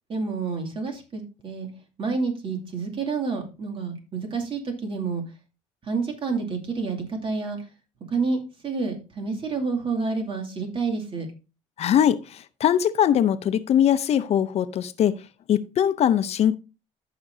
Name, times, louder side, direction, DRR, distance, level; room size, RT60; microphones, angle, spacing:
voice 1, 0.1-1.7 2.0-5.2 5.9-7.6 8.1-11.3, right 4 dB, 40° right, 2.5 m, -29 dB
voice 2, 11.8-15.1 15.5-16.6, left 9 dB, 55° left, 0.6 m, -21 dB
14.5 x 5.9 x 2.7 m
cardioid pair, 110°, 13 cm